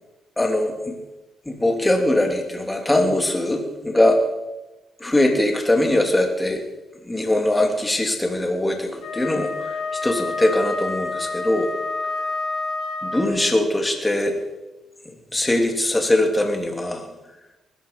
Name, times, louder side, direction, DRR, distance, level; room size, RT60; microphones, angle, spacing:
voice 1, 0.4-0.9 1.5-4.2 5.0-6.6 7.1-11.7 13.0-14.4 15.3-17.1, left 1 dB, 15° left, 3 dB, 2.6 m, -21 dB
Wind instrument woodwind instrument, 8.9-13.6, left 3 dB, 75° left, 3.2 m, -28 dB
20.0 x 13.0 x 5.3 m, 1.0 s
cardioid pair, 90°, 0 cm